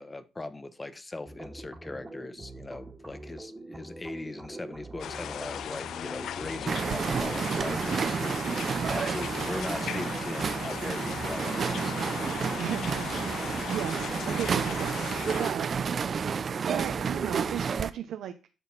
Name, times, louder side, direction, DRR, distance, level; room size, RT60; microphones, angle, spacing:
voice 1, 0.0-11.9, left 2 dB, 20° left, 1.1 m, -39 dB
sound 1, 1.3-17.8, right 2 dB, 15° right, 1.9 m, -45 dB
sound 2, 5.0-15.5, left 10 dB, 70° left, 0.4 m, -38 dB
sound 3, 6.7-17.9, right 6 dB, 50° right, 0.7 m, -31 dB
voice 2, 12.5-15.7 16.5-18.3, right 10 dB, 80° right, 0.9 m, -36 dB
10.5 x 6.4 x 4.2 m
cardioid pair, 90°, 0 cm